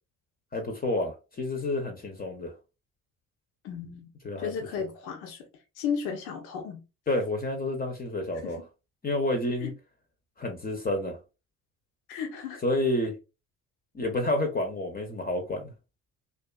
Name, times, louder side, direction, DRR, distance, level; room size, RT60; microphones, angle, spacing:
voice 1, 0.5-2.5 4.2-4.9 7.1-8.6 9.0-9.7 10.4-11.2 12.6-13.2 13.9-15.7, left 1 dB, 25° left, 0.6 m, -29 dB
voice 2, 3.6-4.1 4.4-5.4 5.8-6.8 8.4-8.5 9.6-9.7 12.1-12.6, left 7 dB, 75° left, 0.6 m, -34 dB
2.4 x 2.3 x 2.2 m
hypercardioid pair, 55°, 38 cm